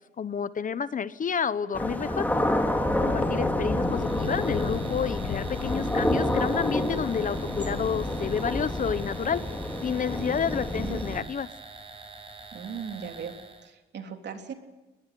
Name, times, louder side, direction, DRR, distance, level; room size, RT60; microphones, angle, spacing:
voice 1, 0.2-2.3 3.0-9.4 9.8-11.5, left 7 dB, 40° left, 15 dB, 1.0 m, -30 dB
sound 1, 1.7-11.2, left 1 dB, 10° left, 2.9 m, -28 dB
sound 2, 2.6-9.3, left 11 dB, 75° left, 1.0 m, -39 dB
sound 3, 3.8-13.7, right 3 dB, 25° right, 6.5 m, -45 dB
voice 2, 12.5-13.4 13.6-14.5, right 7 dB, 60° right, 4 dB, 3.4 m, -38 dB
22.5 x 21.0 x 9.4 m, 1.1 s
cardioid pair, 90°, 20 cm